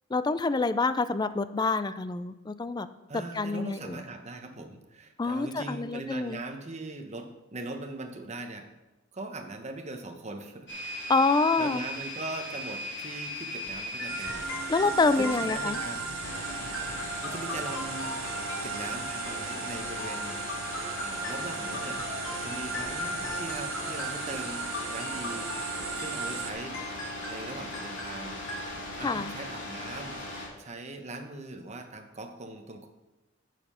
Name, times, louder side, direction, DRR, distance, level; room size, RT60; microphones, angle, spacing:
voice 1, 0.1-2.9 3.3-4.0 5.2-6.4 11.1-11.8 14.7-15.8 29.0-29.3, left 3 dB, 20° left, 13 dB, 0.4 m, -27 dB
voice 2, 3.1-8.7 9.1-10.7 11.6-14.5 15.2-16.1 17.2-18.1 18.6-20.4 21.0-25.5 26.0-26.8 27.3-28.4 28.7-30.2 30.6-32.9, right 2 dB, 35° right, 5 dB, 1.0 m, -40 dB
sound 1, 10.7-30.5, left 1 dB, 65° left, 2.6 m, -38 dB
sound 2, 14.0-28.6, left 2 dB, 80° left, 2.3 m, -41 dB
sound 3, 14.1-26.5, right 6 dB, 80° right, 0.6 m, -37 dB
7.9 x 7.4 x 5.6 m, 1.1 s
head